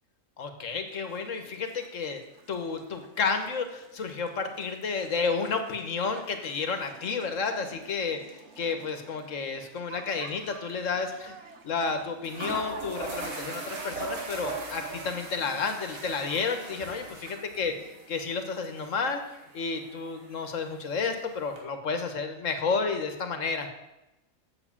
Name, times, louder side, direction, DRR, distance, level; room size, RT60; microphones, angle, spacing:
voice 1, 0.4-2.2 2.5-11.4 11.6-17.7 18.1-23.7, left 5 dB, 70° left, 7 dB, 1.5 m, -31 dB
sound 1, 0.9-17.9, right 4 dB, 60° right, 1.3 m, -52 dB
sound 2, 10.2-10.4 10.7-10.8 11.8-11.9 12.2-21.6, right 3 dB, 80° right, 2.1 m, -40 dB
7.8 x 7.4 x 7.0 m, 0.96 s
omnidirectional pair, 1.4 m